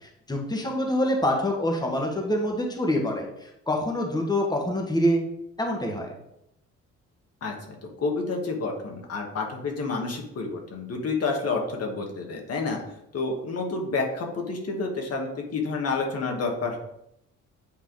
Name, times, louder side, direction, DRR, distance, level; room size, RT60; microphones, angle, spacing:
voice 1, 0.3-5.2 5.6-6.1, left 1 dB, 15° left, 1 dB, 1.3 m, -26 dB
voice 2, 7.4-12.8 13.1-16.8, left 3 dB, 55° left, 2 dB, 1.3 m, -29 dB
8.5 x 3.3 x 3.8 m, 0.80 s
cardioid pair, 90°, 30 cm